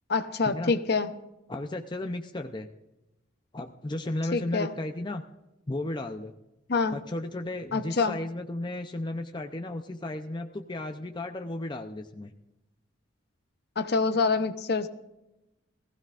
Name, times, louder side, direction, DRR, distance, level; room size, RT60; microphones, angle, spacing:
voice 1, 0.1-1.1 4.3-4.7 6.7-7.0 7.7-8.2 13.8-14.9, left 4 dB, 50° left, 10 dB, 0.8 m, -26 dB
voice 2, 1.5-2.7 3.5-5.2 5.7-6.4 6.9-12.3, left 1 dB, 25° left, 5 dB, 0.6 m, -34 dB
19.0 x 15.0 x 2.5 m, 0.93 s
head